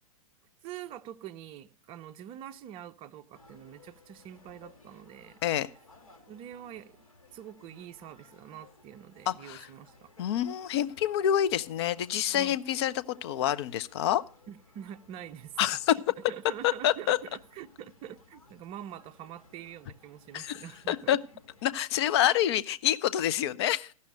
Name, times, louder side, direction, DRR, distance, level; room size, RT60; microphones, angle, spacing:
voice 1, 0.6-5.4 6.3-6.9 7.3-10.1 12.3-12.6 14.5-15.8 16.3-21.2, right 10 dB, 30° right, 0.6 m, -45 dB
sound 1, 3.3-21.8, left 3 dB, 75° left, 2.5 m, -59 dB
voice 2, 9.3-9.7 10.2-14.2 15.6-15.9 16.6-17.2 20.3-21.2 21.6-23.9, left 11 dB, 50° left, 0.6 m, -27 dB
14.5 x 5.5 x 6.3 m
figure-of-eight pair, 110°, 18 cm